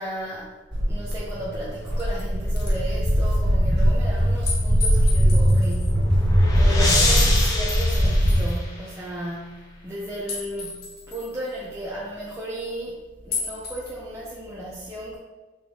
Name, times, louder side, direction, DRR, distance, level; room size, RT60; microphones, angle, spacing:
voice 1, 0.0-6.2 6.5-15.2, right 1 dB, 15° right, -6 dB, 0.5 m, -35 dB
Walk footsteps, 0.7-8.4, equal, 65° right, 1.5 m, -20 dB
sound 1, 1.1-1.2 1.8-2.2 2.6-2.7 3.1-3.2 4.5-5.9 7.2-7.3 7.7-8.6 10.3-11.4 13.3-13.9, left 4 dB, 55° left, 0.7 m, -33 dB
sound 2, 5.7-9.1, left 2 dB, 20° left, 0.8 m, -27 dB
4.5 x 3.5 x 2.8 m, 1.3 s
head